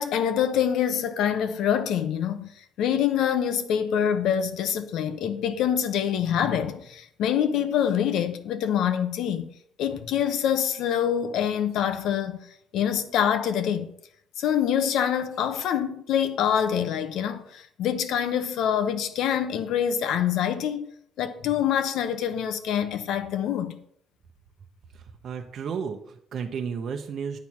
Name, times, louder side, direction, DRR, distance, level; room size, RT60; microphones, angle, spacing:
voice 1, 0.0-2.5 2.8-9.5 9.8-12.5 12.7-13.9 14.4-20.9 21.2-23.8, left 9 dB, 75° left, 1.0 m, -25 dB
voice 2, 24.9-27.4, right 6 dB, 55° right, 0.8 m, -33 dB
9.3 x 4.6 x 7.2 m
cardioid pair, 120°, 0 cm